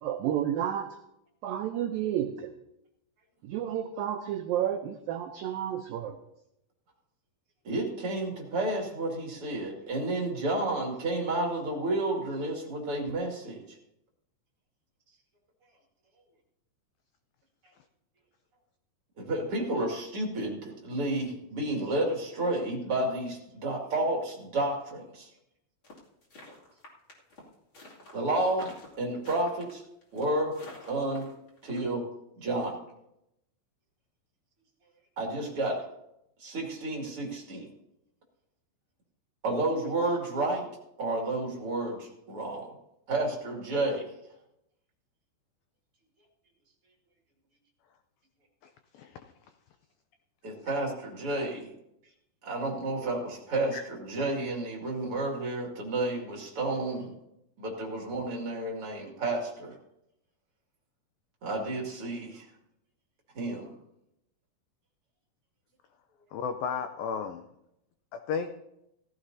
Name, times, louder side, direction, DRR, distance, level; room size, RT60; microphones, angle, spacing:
voice 1, 0.0-1.0 1.4-2.5 3.4-6.2, right 10 dB, 85° right, 4 dB, 2.0 m, -31 dB
voice 2, 7.6-13.8 19.2-25.3 28.1-28.7 29.0-29.8 30.1-30.5 30.9-31.3 31.6-32.0 32.4-32.8 35.2-35.8 36.4-37.7 39.4-40.6 41.0-42.7 43.1-44.1 50.4-51.7 52.4-57.1 57.6-59.8 61.4-62.5 63.3-63.7, right 2 dB, 40° right, -1 dB, 2.6 m, -31 dB
sound 1, 25.8-31.8, left 1 dB, 35° left, 2.8 m, -48 dB
voice 3, 48.6-49.2 53.7-53.8 66.3-67.4 68.1-68.6, left 6 dB, 90° left, 7 dB, 2.0 m, -34 dB
17.0 x 14.5 x 2.7 m, 0.82 s
omnidirectional pair, 5.0 m